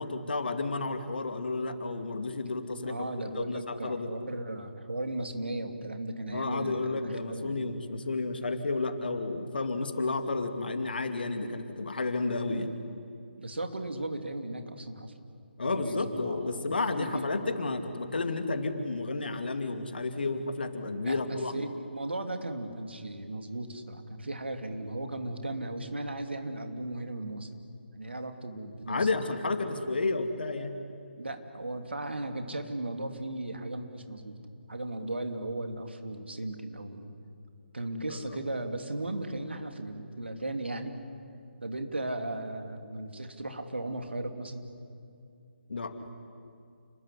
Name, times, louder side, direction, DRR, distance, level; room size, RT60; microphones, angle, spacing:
voice 1, 0.0-3.1 3.3-4.1 6.3-12.7 15.6-21.7 28.9-30.8 38.1-38.4 45.7-45.9, left 3 dB, 55° left, 7 dB, 2.4 m, -31 dB
voice 2, 2.9-7.7 13.4-15.1 15.6-16.7 17.0-17.7 21.0-27.5 27.9-29.1 31.2-34.4 34.7-37.1 37.7-41.0 41.6-44.7, right 1 dB, 65° right, 6 dB, 2.8 m, -36 dB
29.5 x 20.5 x 9.8 m, 2.4 s
figure-of-eight pair, 145°, 6 cm